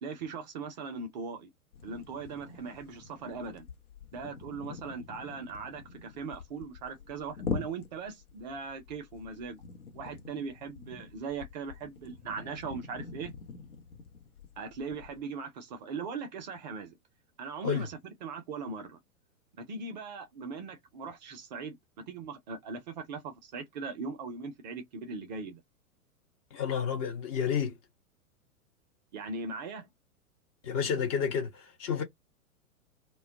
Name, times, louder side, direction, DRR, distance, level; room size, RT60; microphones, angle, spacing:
voice 1, 0.0-1.5 1.8-3.7 4.1-9.6 9.9-13.3 14.6-16.9 17.4-19.0 19.6-25.6 29.1-29.9, right 4 dB, 30° right, 0.5 m, -39 dB
sound 1, 1.7-15.2, left 5 dB, 75° left, 0.8 m, -44 dB
voice 2, 26.5-27.7 30.6-32.0, left 7 dB, 25° left, 0.5 m, -30 dB
2.2 x 2.0 x 3.5 m
figure-of-eight pair, 105°, 44 cm